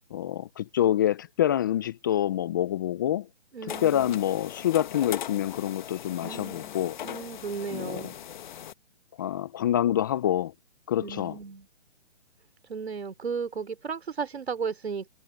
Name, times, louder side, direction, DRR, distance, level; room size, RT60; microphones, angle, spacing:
voice 1, 0.1-3.3 3.8-7.0 7.7-8.0 9.2-10.5 10.9-11.4, left 11 dB, 20° left, 0.5 m, -26 dB
voice 2, 3.5-4.2 6.2-6.7 7.0-8.2 11.0-11.7 12.7-15.1, right 5 dB, 75° right, 3.6 m, -35 dB
sound 1, 3.7-8.7, left 10 dB, 45° left, 1.2 m, -39 dB
hypercardioid pair, 145°, 32 cm